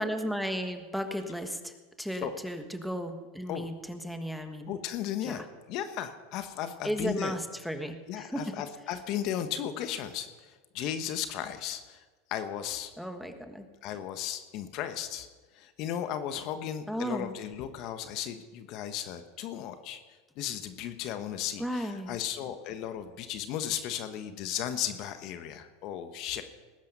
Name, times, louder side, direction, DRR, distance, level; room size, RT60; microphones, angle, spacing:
voice 1, 0.0-1.7 2.0-4.7 5.2-5.5 6.8-8.6 13.0-13.6 16.9-17.3 21.6-22.1, equal, ahead, 6 dB, 1.5 m, -34 dB
voice 2, 4.7-5.4 5.7-7.3 8.1-12.9 13.8-15.3 15.5-20.0 20.4-26.4, left 10 dB, 55° left, 9 dB, 1.2 m, -35 dB
19.5 x 10.5 x 5.4 m, 1.3 s
hypercardioid pair, 100°, 0 cm